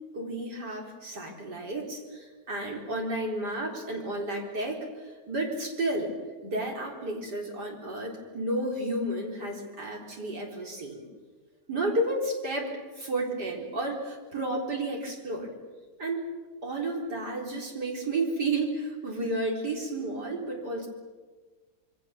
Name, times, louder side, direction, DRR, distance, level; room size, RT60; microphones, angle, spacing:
voice 1, 0.1-6.1 6.4-11.0 11.7-15.5 16.0-16.2 16.6-20.9, right 2 dB, 85° right, 0 dB, 4.7 m, -32 dB
26.5 x 23.0 x 7.2 m, 1.4 s
omnidirectional pair, 1.7 m